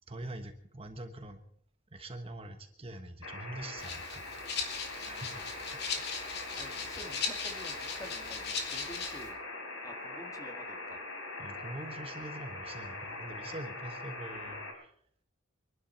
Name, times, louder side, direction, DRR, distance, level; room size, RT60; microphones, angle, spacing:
voice 1, 0.1-1.4 1.9-4.2 5.0-5.4 5.9-6.3 6.6-6.7 11.4-14.9, right 1 dB, 30° right, 6 dB, 1.3 m, -44 dB
sound 1, 3.2-14.7, left 2 dB, 75° left, 4.1 m, -42 dB
Rattle (instrument), 3.8-9.3, left 5 dB, 50° left, 2.9 m, -38 dB
voice 2, 5.0-5.4 6.6-9.4 9.8-11.0, equal, 15° left, 5 dB, 1.8 m, -50 dB
24.5 x 12.0 x 4.5 m, 0.63 s
head